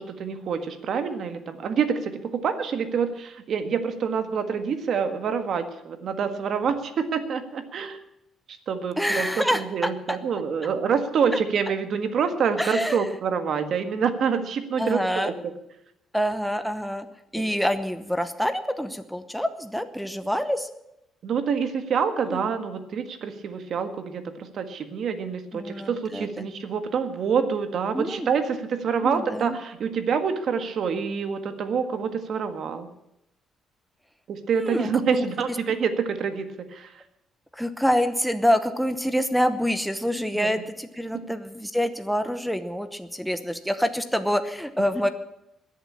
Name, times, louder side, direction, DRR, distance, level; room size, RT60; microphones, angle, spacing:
voice 1, 0.0-8.0 8.7-9.3 9.5-15.3 17.3-17.4 21.2-32.9 34.3-37.0 40.3-40.5, right 6 dB, 55° right, 8 dB, 1.7 m, -27 dB
voice 2, 9.0-10.2 12.6-13.1 14.8-15.3 16.1-17.1 17.3-20.7 22.2-22.5 25.5-26.5 27.9-28.3 29.0-29.6 34.5-35.6 37.5-45.1, equal, ahead, 11 dB, 0.9 m, -26 dB
21.0 x 7.5 x 8.6 m, 0.86 s
cardioid pair, 135°, 0 cm